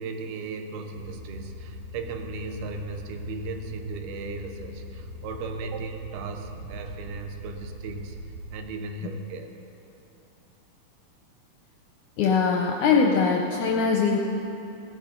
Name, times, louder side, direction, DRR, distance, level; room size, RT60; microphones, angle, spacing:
voice 1, 0.0-8.2 8.5-9.5, right 4 dB, 85° right, 5 dB, 3.0 m, -36 dB
sound 1, 0.9-8.6, equal, 70° right, 2.0 m, -41 dB
voice 2, 12.2-14.2, left 5 dB, 75° left, 1 dB, 1.8 m, -22 dB
18.0 x 10.5 x 5.3 m, 2.9 s
omnidirectional pair, 4.4 m